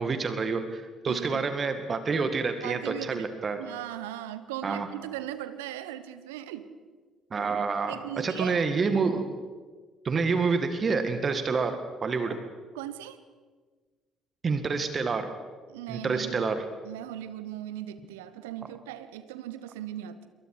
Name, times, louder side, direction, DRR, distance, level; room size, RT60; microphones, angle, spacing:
voice 1, 0.0-3.6 4.6-4.9 7.3-9.3 10.0-11.7 12.0-12.4 14.4-15.3 15.9-16.6, right 4 dB, 40° right, 8 dB, 2.0 m, -28 dB
voice 2, 1.1-1.5 2.6-3.3 3.6-6.7 7.9-8.6 11.3-11.4 12.3-12.4 12.7-13.2 15.7-16.5 16.8-20.3, right 12 dB, 75° right, 13 dB, 1.1 m, -38 dB
27.0 x 22.5 x 4.9 m, 1.4 s
figure-of-eight pair, 50°, 0 cm